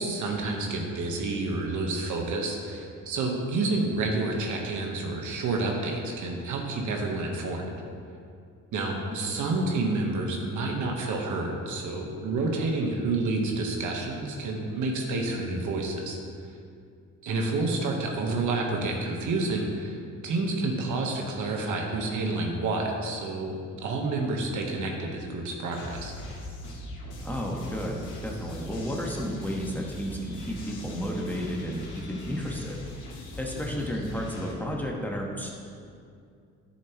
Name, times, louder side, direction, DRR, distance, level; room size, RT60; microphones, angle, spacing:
voice 1, 0.0-7.7 8.7-16.2 17.2-20.0 20.2-26.1, right 2 dB, 80° right, 1 dB, 1.3 m, -29 dB
sound 1, 25.7-34.5, left 1 dB, 85° left, 2.0 m, -40 dB
voice 2, 27.2-32.8 33.4-35.5, equal, 5° left, -1 dB, 1.3 m, -32 dB
10.5 x 7.3 x 3.1 m, 2.3 s
cardioid pair, 90°, 30 cm